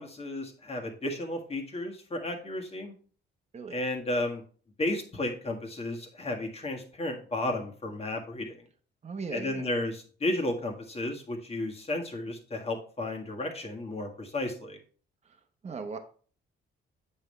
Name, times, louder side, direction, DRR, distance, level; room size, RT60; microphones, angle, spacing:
voice 1, 0.0-2.9 3.7-4.4 4.8-8.5 9.3-14.8, left 1 dB, 30° left, 2 dB, 1.7 m, -33 dB
voice 2, 9.0-9.6 15.6-16.0, right 4 dB, 35° right, 4 dB, 1.0 m, -37 dB
8.0 x 5.5 x 3.3 m, 0.43 s
cardioid pair, 90°, 20 cm